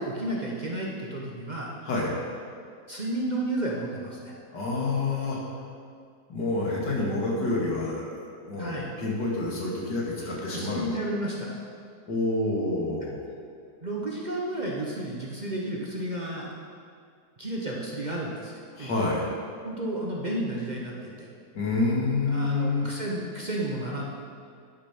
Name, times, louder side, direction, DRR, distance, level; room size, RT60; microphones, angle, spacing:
voice 1, 0.0-1.7 2.9-4.3 8.6-8.9 10.2-11.7 13.8-16.5 17.4-18.5 18.8-18.9 19.6-21.3 22.3-24.0, right 1 dB, 30° right, -3 dB, 1.1 m, -32 dB
voice 2, 4.5-5.4 6.3-10.8 12.1-13.2 18.7-19.2 21.5-22.9, left 2 dB, 90° left, -3 dB, 2.6 m, -28 dB
10.5 x 6.9 x 5.9 m, 2.2 s
omnidirectional pair, 1.8 m